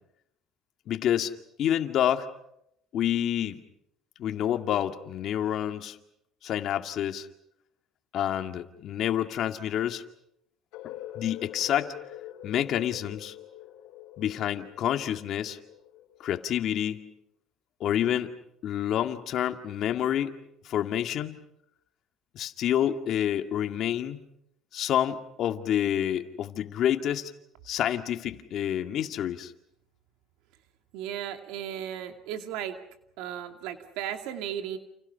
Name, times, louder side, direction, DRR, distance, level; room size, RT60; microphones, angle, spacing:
voice 1, 0.9-1.3 1.6-2.3 2.9-3.6 4.2-6.0 6.4-7.3 8.1-10.0 10.8-11.9 12.4-13.3 14.2-15.6 16.2-17.1 17.8-18.3 18.6-20.4 20.7-21.4 22.3-24.2 24.7-27.3 27.7-29.5, left 10 dB, 55° left, 7 dB, 2.1 m, -28 dB
sound 1, 10.7-16.6, left 13 dB, 85° left, 3.4 m, -45 dB
voice 2, 30.9-32.8 33.2-34.8, right 10 dB, 80° right, 7 dB, 2.5 m, -35 dB
29.5 x 29.0 x 5.7 m, 0.78 s
cardioid pair, 120°, 0 cm